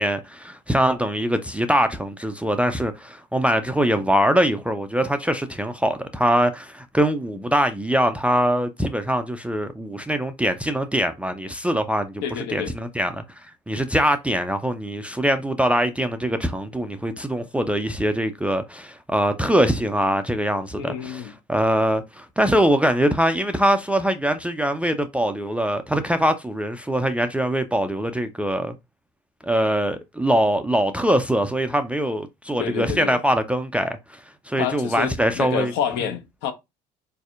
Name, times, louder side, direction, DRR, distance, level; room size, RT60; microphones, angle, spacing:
voice 1, 0.0-12.2 12.5-13.1 13.7-28.7 29.4-34.2 34.5-35.7, equal, 5° right, 0.4 m, -23 dB
voice 2, 12.2-12.7 20.8-21.3 32.6-33.2 34.6-36.5, left 8 dB, 60° left, 0.6 m, -28 dB
4.0 x 2.6 x 2.4 m
figure-of-eight pair, 55°, 21 cm